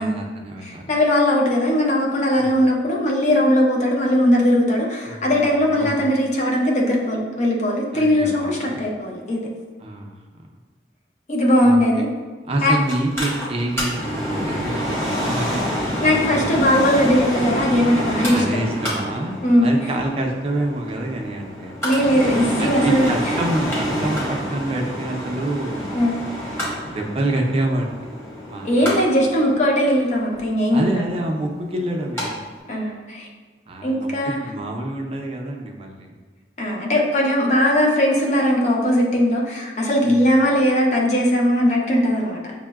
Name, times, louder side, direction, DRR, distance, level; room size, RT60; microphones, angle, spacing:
voice 1, 0.0-0.8 2.4-2.5 5.0-6.0 7.9-8.8 9.8-10.2 11.6-11.8 12.5-16.6 18.3-21.8 22.6-26.0 26.9-27.9 28.5-28.9 30.7-32.4 33.7-36.1 40.0-40.2, right 1 dB, 35° right, 1 dB, 0.4 m, -27 dB
voice 2, 0.6-9.4 11.3-12.1 12.6-12.8 16.0-18.6 19.4-19.7 21.8-23.1 25.9-26.2 26.5-26.7 28.6-31.0 32.7-33.3 33.8-34.4 36.6-42.4, equal, 40° left, -2 dB, 0.6 m, -19 dB
Mechanical fan, 12.9-32.3 32.6-32.7, equal, 15° left, 0.9 m, -27 dB
6.2 x 2.1 x 2.3 m, 1.4 s
head